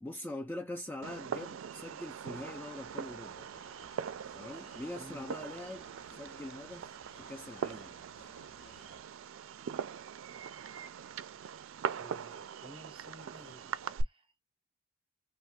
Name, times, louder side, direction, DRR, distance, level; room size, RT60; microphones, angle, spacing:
voice 1, 0.0-3.5 4.3-6.9 7.2-8.0, left 1 dB, 10° left, 0.3 m, -43 dB
Fireworks, 1.0-14.0, right 7 dB, 75° right, 0.4 m, -41 dB
sound 1, 2.3-9.0, left 3 dB, 50° left, 0.8 m, -59 dB
voice 2, 5.0-5.3 12.0-14.3, right 1 dB, 25° right, 0.7 m, -53 dB
3.3 x 2.2 x 3.5 m
head